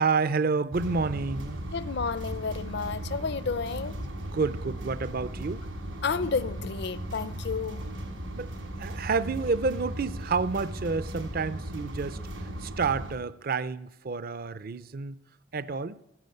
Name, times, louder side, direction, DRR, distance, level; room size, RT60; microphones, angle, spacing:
voice 1, 0.0-1.6 4.0-5.6 8.3-8.5 8.8-15.2 15.5-15.9, right 4 dB, 45° right, 0.5 m, -29 dB
sound 1, 0.7-13.1, right 1 dB, 85° right, 4.9 m, -37 dB
voice 2, 1.7-4.0 6.0-7.8, left 5 dB, 55° left, 0.5 m, -31 dB
14.5 x 10.5 x 7.8 m
head